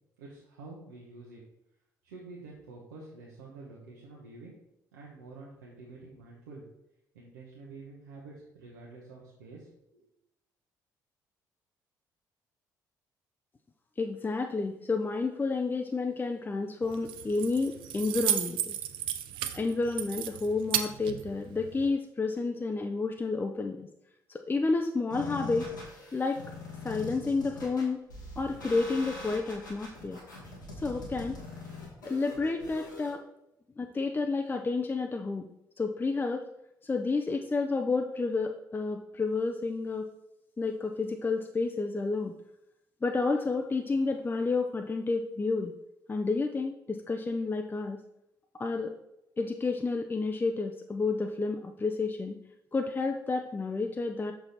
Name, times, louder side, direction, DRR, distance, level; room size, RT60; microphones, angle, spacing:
voice 1, 0.2-1.4 2.0-4.6 4.9-6.6 7.1-10.1, right 3 dB, 75° right, -4 dB, 1.0 m, -48 dB
voice 2, 14.0-18.8 19.5-23.9 24.3-25.7 26.1-26.4 26.8-28.0 28.4-30.2 30.8-31.4 32.0-33.2 33.8-35.5 35.8-36.4 36.8-40.1 40.6-42.3 43.0-45.7 46.1-48.0 48.6-48.9 49.4-52.4 52.7-54.3, left 3 dB, 20° left, 4 dB, 0.5 m, -30 dB
Keys jangling, 16.8-21.9, right 11 dB, 60° right, 0.5 m, -34 dB
sound 1, 25.1-33.1, left 3 dB, 80° left, 1.6 m, -43 dB
6.3 x 4.6 x 4.1 m, 0.84 s
figure-of-eight pair, 45°, 10 cm